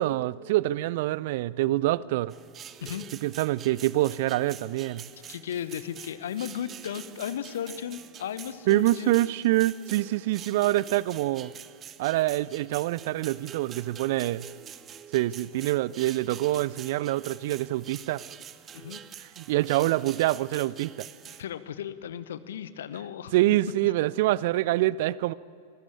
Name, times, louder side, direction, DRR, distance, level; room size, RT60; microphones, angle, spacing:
voice 1, 0.0-2.3 3.2-5.0 8.7-11.5 12.0-14.4 15.1-18.2 19.4-21.1 23.3-25.3, right 16 dB, 50° right, 0.4 m, -25 dB
sound 1, 2.3-21.4, right 9 dB, 25° right, 0.8 m, -46 dB
voice 2, 5.3-9.2 18.7-19.0 21.4-23.4 23.8-23.9, left 9 dB, 60° left, 1.0 m, -35 dB
24.5 x 15.0 x 8.7 m
figure-of-eight pair, 90°, 0 cm